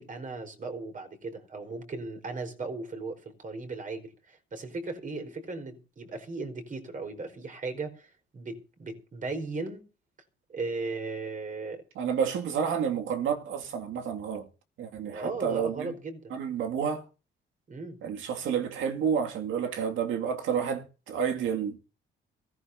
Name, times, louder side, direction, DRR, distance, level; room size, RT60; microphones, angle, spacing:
voice 1, 0.0-9.8 10.5-11.8 15.0-16.3 17.7-18.0, right 3 dB, 40° right, 4.6 m, -37 dB
voice 2, 12.0-14.5 14.8-15.9 16.3-17.0 18.0-21.8, right 7 dB, 80° right, 2.5 m, -30 dB
22.5 x 15.5 x 2.8 m
cardioid pair, 90°, 20 cm